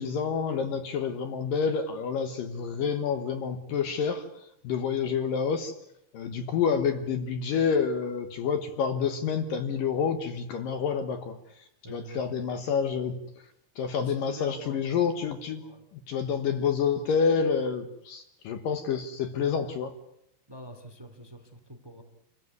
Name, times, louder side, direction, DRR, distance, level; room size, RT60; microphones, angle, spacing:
voice 1, 0.0-4.2 4.6-5.7 6.1-11.4 11.9-13.1 13.8-15.6 16.1-19.9, left 6 dB, 65° left, 9 dB, 2.6 m, -28 dB
voice 2, 11.8-12.5 13.9-14.8 15.6-15.8 20.5-22.0, equal, 5° right, 5 dB, 2.4 m, -45 dB
28.0 x 15.0 x 9.5 m, 0.75 s
omnidirectional pair, 4.8 m